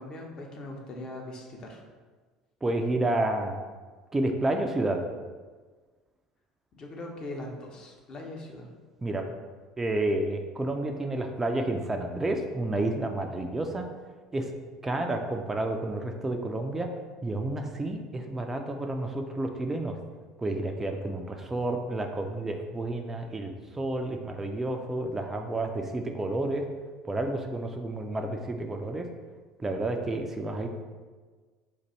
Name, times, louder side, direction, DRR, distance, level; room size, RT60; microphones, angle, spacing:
voice 1, 0.0-1.8 6.7-8.7, left 1 dB, 35° left, 1 dB, 0.8 m, -40 dB
voice 2, 2.6-3.6 4.1-5.0 9.0-9.3 9.8-13.9 14.3-14.5 14.8-16.9 17.2-20.0 20.4-26.7 27.1-29.1 29.6-30.7, right 2 dB, 15° right, 4 dB, 0.4 m, -30 dB
3.9 x 2.6 x 4.4 m, 1.4 s
figure-of-eight pair, 65°, 2 cm